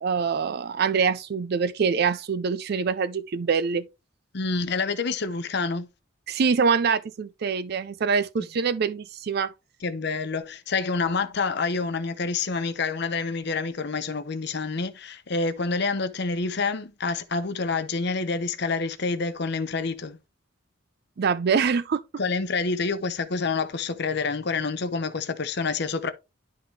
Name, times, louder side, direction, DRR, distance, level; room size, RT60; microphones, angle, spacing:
voice 1, 0.0-3.9 6.3-9.5 21.2-22.0, right 5 dB, 55° right, 0.4 m, -24 dB
voice 2, 4.3-5.9 9.8-20.2 22.2-26.1, left 4 dB, 55° left, 0.8 m, -27 dB
11.0 x 3.8 x 3.2 m
head